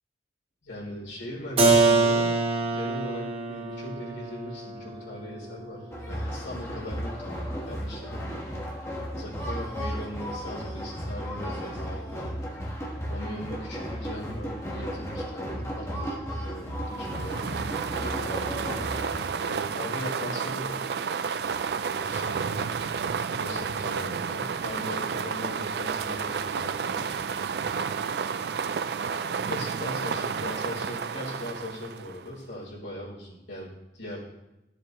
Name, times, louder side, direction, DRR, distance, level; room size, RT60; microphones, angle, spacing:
voice 1, 0.6-8.5 9.1-12.3 13.1-18.8 19.4-21.0 21.8-22.7 23.3-27.2 29.5-34.2, left 1 dB, 85° left, -5 dB, 3.6 m, -39 dB
Keyboard (musical), 1.6-7.2, right 3 dB, 30° right, 1.1 m, -26 dB
sound 1, 5.9-19.2, equal, 15° left, 1.3 m, -34 dB
sound 2, 16.9-32.3, right 6 dB, 65° right, 0.3 m, -31 dB
13.0 x 7.3 x 3.1 m, 0.93 s
head